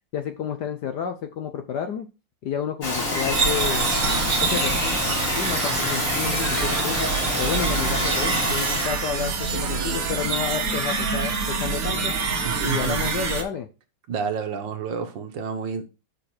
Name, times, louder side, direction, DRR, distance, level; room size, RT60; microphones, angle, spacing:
voice 1, 0.1-2.1 2.4-3.9 4.4-7.1 7.4-12.1 12.5-13.7, left 8 dB, 65° left, 1.1 m, -30 dB
Bird vocalization bird call bird song, 2.8-8.9, left 2 dB, 40° left, 2.9 m, -27 dB
sound 1, 3.3-13.4, right 5 dB, 50° right, 1.4 m, -26 dB
voice 2, 12.4-13.2 14.1-15.8, right 6 dB, 65° right, 1.6 m, -30 dB
6.7 x 5.3 x 4.3 m
omnidirectional pair, 2.4 m